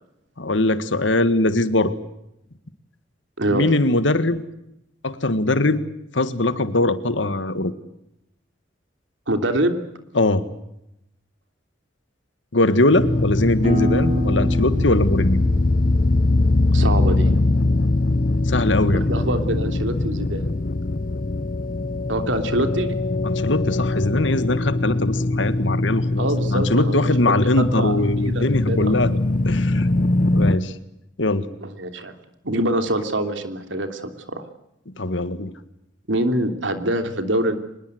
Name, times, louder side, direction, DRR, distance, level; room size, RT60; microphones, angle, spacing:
voice 1, 0.4-1.9 3.5-4.4 5.0-5.8 6.1-7.7 10.2-10.4 12.5-15.4 18.5-19.0 23.2-29.1 29.5-29.9 30.3-30.7 31.2-31.5 34.9-35.5, left 2 dB, 80° left, 12 dB, 1.8 m, -21 dB
voice 2, 3.4-3.7 9.3-9.8 16.7-17.4 18.9-20.4 22.1-23.0 26.2-29.0 31.6-32.1 32.4-34.4 36.1-37.6, right 1 dB, 85° right, 7 dB, 3.1 m, -25 dB
sound 1, 12.9-30.6, left 2 dB, 45° left, 0.8 m, -21 dB
sound 2, 13.6-19.0, equal, 35° right, 4.3 m, -31 dB
24.5 x 21.5 x 8.0 m, 0.83 s
head